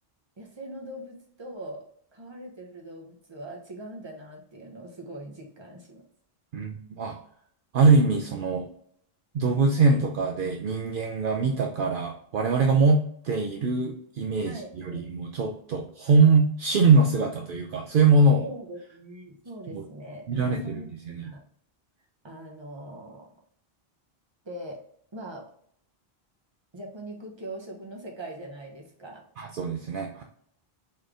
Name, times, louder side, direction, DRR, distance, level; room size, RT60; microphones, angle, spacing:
voice 1, 0.4-1.8 2.1-6.0 14.4-15.0 18.4-21.4 22.2-23.3 24.4-24.8 25.1-25.5 26.7-29.2, right 1 dB, 25° right, -1 dB, 1.0 m, -41 dB
voice 2, 6.5-7.2 7.7-8.7 9.3-18.4 19.7-19.8 20.3-20.8 21.1-21.3 29.4-30.2, right 3 dB, 65° right, 3 dB, 0.7 m, -23 dB
4.3 x 3.2 x 3.6 m, 0.66 s
omnidirectional pair, 1.0 m